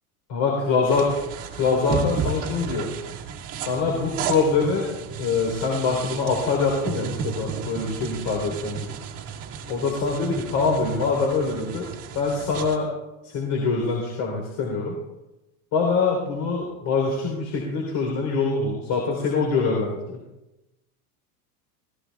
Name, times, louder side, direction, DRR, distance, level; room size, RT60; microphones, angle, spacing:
voice 1, 0.3-1.1 1.5-2.9 3.5-4.9 5.2-8.9 9.7-11.9 12.1-12.9 13.2-15.0 15.7-20.2, left 4 dB, 45° left, 0 dB, 3.6 m, -24 dB
sound 1, 0.9-12.8, right 6 dB, 30° right, 1.8 m, -33 dB
26.5 x 17.5 x 2.3 m, 0.99 s
supercardioid pair, 160°, 45 cm